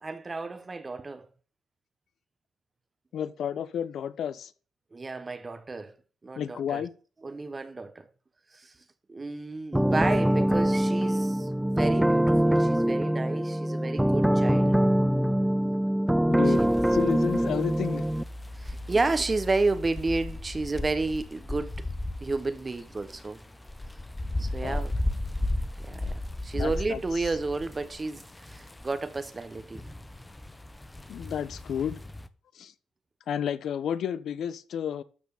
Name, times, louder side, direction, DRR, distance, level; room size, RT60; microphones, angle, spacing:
voice 1, 0.0-1.3 4.9-5.9 6.2-6.8 7.2-8.0 8.6-8.7 9.1-14.7 16.6-16.7 18.6-21.7 22.2-23.4 24.4-24.9 25.8-26.1 26.4-29.8, right 3 dB, 25° right, 1.0 m, -31 dB
voice 2, 3.1-4.5 6.4-6.9 16.3-16.6 16.9-18.1 24.6-24.9 26.5-27.0 31.1-32.0 32.5-32.7 33.3-35.0, left 9 dB, 65° left, 0.8 m, -31 dB
sound 1, 9.7-18.2, equal, 5° right, 0.4 m, -24 dB
sound 2, 16.5-32.3, left 1 dB, 10° left, 0.8 m, -36 dB
12.5 x 4.3 x 7.1 m
cardioid pair, 90°, 0 cm